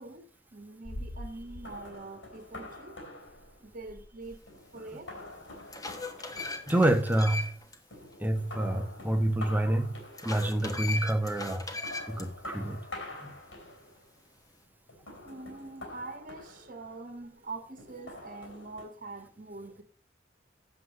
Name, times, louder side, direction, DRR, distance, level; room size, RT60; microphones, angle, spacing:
voice 1, 0.0-3.0 3.6-4.4 4.7-5.1 15.2-19.8, right 3 dB, 45° right, 1.5 m, -44 dB
sound 1, 0.8-7.6 7.9-10.6 11.5-14.1 14.9-17.1 17.8-18.8, left 1 dB, 80° left, 4.0 m, -46 dB
sound 2, 4.8-4.9 5.4-7.8 8.1-8.2 10.1-12.3, left 3 dB, 20° left, 1.3 m, -38 dB
voice 2, 6.7-7.5 8.2-9.9 10.2-11.7 12.1-12.8 13.2-13.3, right 1 dB, 10° right, 1.1 m, -27 dB
8.1 x 7.7 x 5.1 m
head